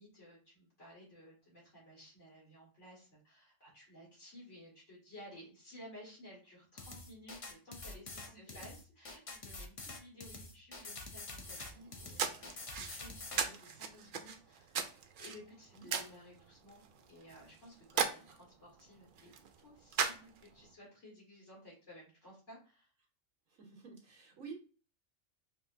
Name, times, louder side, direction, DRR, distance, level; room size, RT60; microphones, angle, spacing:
voice 1, 0.0-14.8 15.2-19.3 19.6-22.9, equal, 60° left, -5 dB, 2.1 m, -56 dB
sound 1, 6.8-13.4, left 3 dB, 40° left, 0.5 m, -47 dB
voice 2, 8.2-8.6 15.7-15.9 23.5-24.5, right 5 dB, 80° right, 2 dB, 1.6 m, -51 dB
sound 2, 11.4-20.7, right 6 dB, 60° right, 0.5 m, -40 dB
4.9 x 2.9 x 2.6 m, 0.38 s
omnidirectional pair, 1.4 m